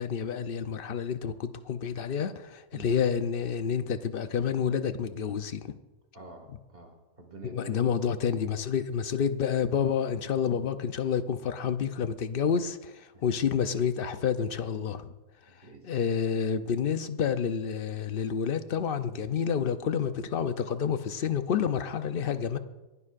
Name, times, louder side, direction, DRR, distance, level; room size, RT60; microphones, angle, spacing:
voice 1, 0.0-5.8 7.5-15.1 15.9-22.6, left 7 dB, 55° left, 0.7 m, -29 dB
voice 2, 6.1-7.8 8.2-8.5 13.1-13.3 15.5-16.1, right 2 dB, 40° right, 2.3 m, -48 dB
26.0 x 11.0 x 2.5 m
omnidirectional pair, 1.5 m